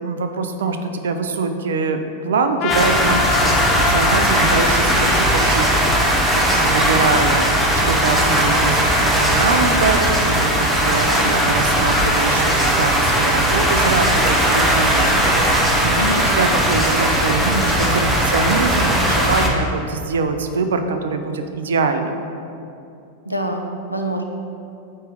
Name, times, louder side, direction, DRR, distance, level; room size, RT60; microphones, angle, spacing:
voice 1, 0.0-3.6 3.9-7.5 7.9-15.4 15.8-22.2, right 4 dB, 65° right, 7 dB, 0.5 m, -24 dB
Trumpet, 2.6-6.9, left 8 dB, 35° left, 0.3 m, -26 dB
sound 1, 2.7-19.5, right 1 dB, 10° right, 0.9 m, -18 dB
voice 2, 23.3-24.3, equal, 90° left, 3 dB, 0.6 m, -25 dB
8.9 x 3.2 x 5.0 m, 2.7 s
figure-of-eight pair, 90°, 0 cm